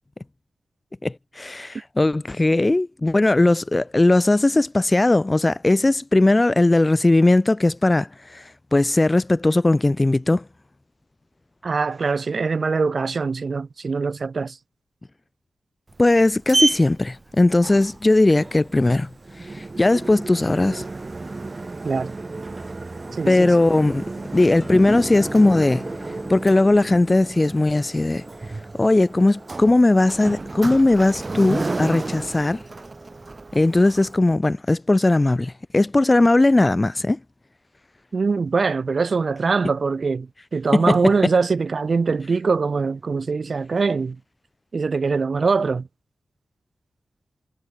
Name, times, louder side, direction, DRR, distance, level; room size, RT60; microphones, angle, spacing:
voice 1, 1.0-10.4 16.0-19.1 19.4-20.8 23.3-24.0 24.3-25.8 26.3-28.2 28.8-32.6 33.5-37.2 40.7-40.8, left 2 dB, 25° left, 0.5 m, -18 dB
voice 2, 11.6-14.6 21.8-22.1 23.1-23.5 38.1-44.2 44.7-45.9, right 4 dB, 55° right, 0.4 m, -23 dB
Sliding door, 15.9-34.2, right 3 dB, 40° right, 1.2 m, -32 dB
sound 1, 24.6-31.1, left 1 dB, 10° left, 6.7 m, -37 dB
cardioid pair, 45°, 0 cm